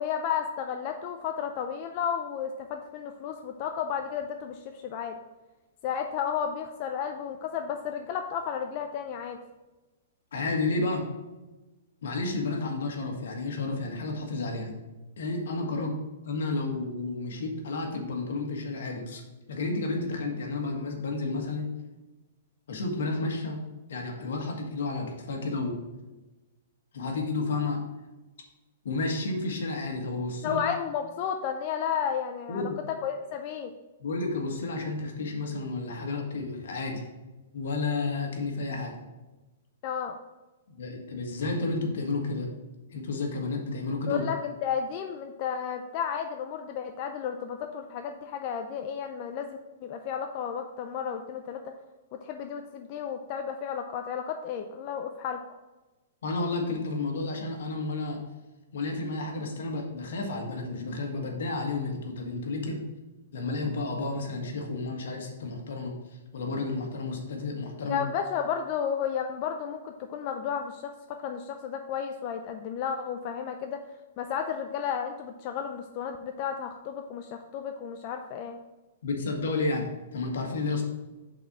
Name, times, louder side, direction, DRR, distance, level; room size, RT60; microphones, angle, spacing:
voice 1, 0.0-5.2 5.8-9.4 15.8-15.9 30.4-33.7 39.8-40.2 44.1-51.6 52.2-55.4 67.9-73.8 74.2-78.6, left 7 dB, 35° left, 5 dB, 0.4 m, -33 dB
voice 2, 10.3-11.1 12.0-14.8 15.2-15.9 16.2-19.2 19.5-21.7 22.7-23.6 23.9-25.8 26.9-27.8 28.8-30.6 32.5-32.7 34.0-37.0 37.5-39.0 40.7-42.5 42.9-44.2 56.2-58.2 58.7-62.8 63.3-65.9 66.3-68.0 79.0-80.8, left 3 dB, 75° left, 2 dB, 1.6 m, -31 dB
5.7 x 4.3 x 6.0 m, 1.1 s
hypercardioid pair, 155°, 0 cm